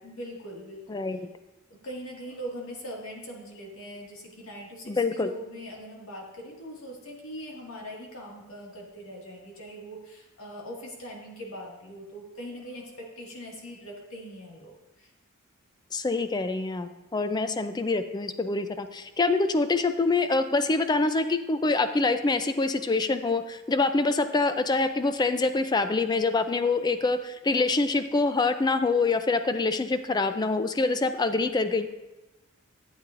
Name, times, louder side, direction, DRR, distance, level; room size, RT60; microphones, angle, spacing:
voice 1, 0.0-1.0 1.7-15.1, equal, 70° left, -2 dB, 2.0 m, -41 dB
voice 2, 4.9-5.3 15.9-31.9, left 3 dB, 20° left, 10 dB, 0.4 m, -25 dB
12.0 x 8.2 x 2.5 m, 1.0 s
head